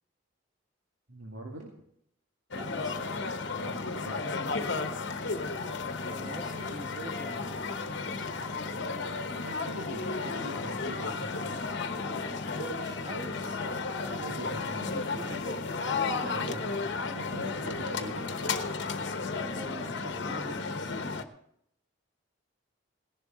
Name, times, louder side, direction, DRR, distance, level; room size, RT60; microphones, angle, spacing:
voice 1, 1.1-1.7 3.6-5.0 9.3-11.7 14.1-15.2 16.2-18.6, right 2 dB, 90° right, -1 dB, 2.1 m, -43 dB
sound 1, 2.5-21.2, left 4 dB, 60° left, 1.0 m, -33 dB
voice 2, 2.5-3.1 6.1-7.5 8.0-8.3 12.5-15.6 16.1-17.1 19.4-21.2, equal, 20° right, 4 dB, 1.6 m, -44 dB
17.5 x 11.5 x 3.9 m, 0.73 s
head